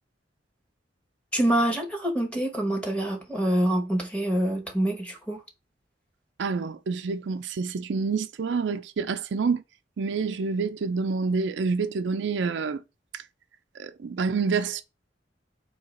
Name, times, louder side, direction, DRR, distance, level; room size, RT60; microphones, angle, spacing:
voice 1, 1.3-5.4, right 1 dB, 5° left, 1.1 m, -26 dB
voice 2, 6.4-9.6 10.0-12.8 13.1-13.2 13.8-14.8, right 4 dB, 75° right, 0.4 m, -28 dB
3.8 x 2.9 x 4.2 m
head